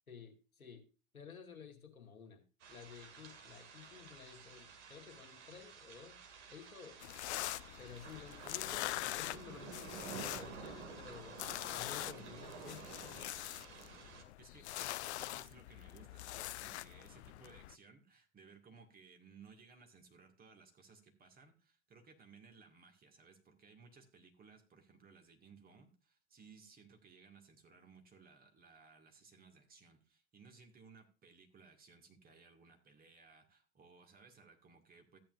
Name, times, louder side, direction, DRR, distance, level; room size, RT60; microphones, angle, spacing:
voice 1, 0.1-0.8 1.1-2.4 2.7-6.2 6.5-7.0 7.8-11.4 11.7-13.2 13.5-13.7, left 6 dB, 85° left, 3 dB, 2.0 m, -53 dB
sound 1, 2.6-14.2, right 6 dB, 55° right, 2.3 m, -52 dB
sound 2, 7.0-17.7, left 16 dB, 55° left, 0.5 m, -44 dB
voice 2, 14.4-35.2, right 5 dB, 20° right, 5 dB, 1.9 m, -61 dB
14.0 x 8.9 x 2.5 m, 0.33 s
figure-of-eight pair, 95°, 41 cm